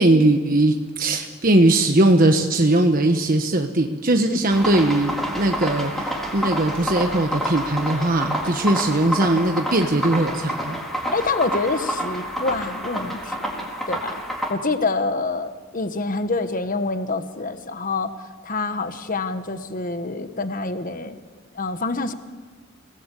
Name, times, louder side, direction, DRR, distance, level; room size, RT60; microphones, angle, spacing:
voice 1, 0.0-10.8, right 1 dB, 40° right, 4 dB, 1.3 m, -19 dB
sound 1, 4.5-14.5, equal, ahead, 4.0 m, -28 dB
voice 2, 11.1-14.1 14.5-18.1 18.4-21.2 21.5-22.1, left 3 dB, 40° left, 9 dB, 1.2 m, -26 dB
29.0 x 19.0 x 8.4 m, 1.5 s
head